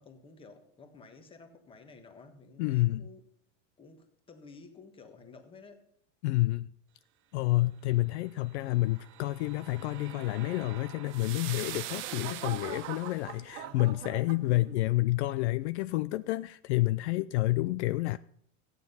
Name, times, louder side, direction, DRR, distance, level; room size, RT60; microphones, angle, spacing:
voice 1, 0.0-3.3 3.8-5.9, left 4 dB, 15° left, 1.4 m, -53 dB
voice 2, 2.6-3.0 6.2-6.7 7.3-18.2, left 18 dB, 60° left, 0.5 m, -29 dB
sound 1, 8.6-13.2, right 12 dB, 30° right, 0.8 m, -43 dB
sound 2, 11.4-15.0 15.5-15.8, right 10 dB, 80° right, 1.5 m, -43 dB
14.5 x 9.6 x 5.5 m
supercardioid pair, 160°, 38 cm